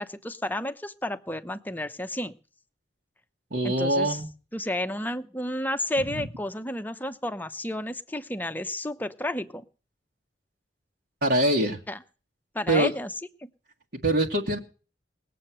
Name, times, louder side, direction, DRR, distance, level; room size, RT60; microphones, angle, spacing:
voice 1, 0.0-2.4 3.6-4.2 4.5-9.6 11.9-12.0 12.5-13.1 13.4-13.5, left 1 dB, 10° left, 9 dB, 0.8 m, -31 dB
voice 2, 3.5-4.3 6.2-6.3 11.2-11.8 12.7-12.9 14.0-14.6, right 1 dB, 60° right, -1 dB, 1.9 m, -23 dB
20.5 x 7.8 x 7.7 m, 0.37 s
head